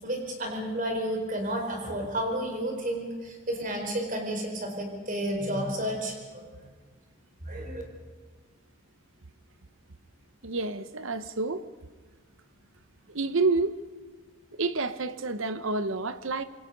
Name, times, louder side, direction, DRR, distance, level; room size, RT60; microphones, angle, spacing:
voice 1, 0.0-6.7 7.5-7.8, right 1 dB, 40° right, 4.4 m, -31 dB
voice 2, 10.4-11.6 13.1-13.8 14.6-16.4, right 3 dB, 70° right, 0.9 m, -29 dB
26.5 x 22.5 x 5.4 m
head